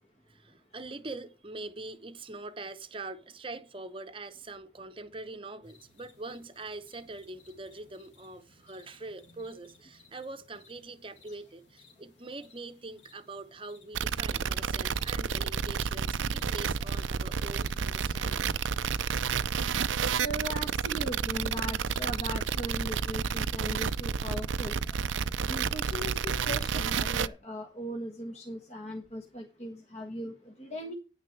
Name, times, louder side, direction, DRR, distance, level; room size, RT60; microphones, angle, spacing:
voice 1, 0.3-18.5, right 2 dB, 30° right, 0.9 m, -43 dB
sound 1, 5.6-24.4, left 3 dB, 75° left, 2.6 m, -61 dB
sound 2, 13.9-27.3, right 6 dB, 90° right, 0.5 m, -30 dB
voice 2, 20.2-24.8 25.5-30.9, equal, 35° left, 1.5 m, -39 dB
10.0 x 9.6 x 4.6 m
head